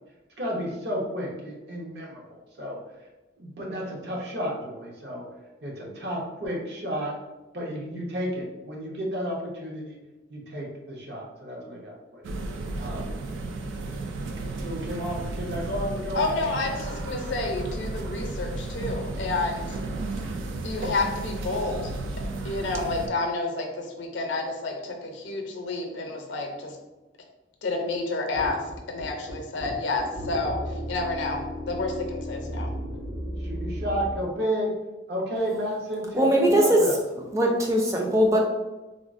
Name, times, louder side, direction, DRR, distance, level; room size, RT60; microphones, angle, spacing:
voice 1, 0.4-2.8 3.4-5.2 5.6-7.1 7.5-10.0 10.3-12.3 12.8-13.1 14.5-16.2 33.4-34.7 35.1-37.0, equal, 60° right, -2 dB, 0.7 m, -32 dB
sound 1, 12.2-23.1, right 2 dB, 85° right, 0.3 m, -33 dB
voice 2, 16.1-19.8 20.6-21.9 22.4-26.8 27.6-32.7, left 3 dB, 75° left, 2 dB, 0.5 m, -30 dB
sound 2, 28.3-34.2, equal, 45° right, 1.1 m, -34 dB
voice 3, 36.1-36.8 37.3-38.4, right 1 dB, 15° right, -1 dB, 0.4 m, -20 dB
3.5 x 2.0 x 2.5 m, 1.1 s
head